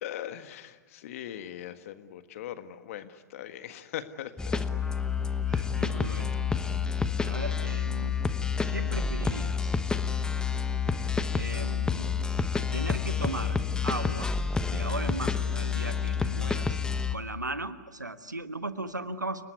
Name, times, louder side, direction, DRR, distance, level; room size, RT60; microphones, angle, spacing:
voice 1, 0.0-4.6, left 11 dB, 50° left, 11 dB, 1.7 m, -40 dB
sound 1, 4.4-17.2, left 6 dB, 10° left, 1.1 m, -29 dB
voice 2, 5.5-6.8 7.2-8.1 8.7-9.7 10.9-12.1 12.7-13.6 13.8-14.3 14.7-16.8 17.1-19.4, right 2 dB, 90° right, 11 dB, 1.4 m, -37 dB
30.0 x 19.5 x 9.6 m, 1.4 s
figure-of-eight pair, 105°, 9 cm